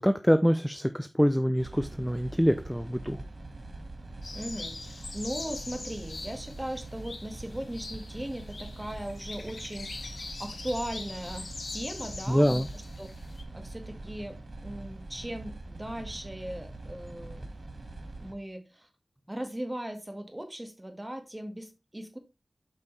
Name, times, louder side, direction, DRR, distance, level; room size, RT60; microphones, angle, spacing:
voice 1, 0.0-3.2 12.3-12.7, equal, ahead, 9 dB, 0.5 m, -25 dB
sound 1, 1.6-18.3, right 2 dB, 70° right, 2.0 m, -43 dB
sound 2, 4.2-13.4, left 3 dB, 75° left, 1.1 m, -43 dB
voice 2, 4.3-13.1 13.5-17.5 18.2-18.9 19.3-22.2, right 1 dB, 20° right, 6 dB, 1.8 m, -38 dB
8.1 x 5.5 x 3.3 m, 0.26 s
wide cardioid pair, 55°, 0 cm